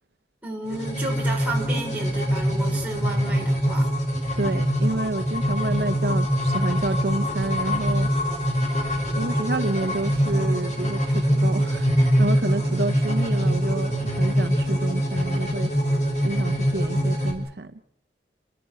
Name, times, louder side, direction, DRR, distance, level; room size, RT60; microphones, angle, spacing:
voice 1, 0.4-3.9, right 1 dB, 10° right, 5.3 m, -32 dB
sound 1, 0.7-17.3, equal, 40° left, 5.4 m, -23 dB
voice 2, 4.3-8.3 9.1-17.7, right 2 dB, 60° right, 0.8 m, -29 dB
29.5 x 12.0 x 8.8 m
head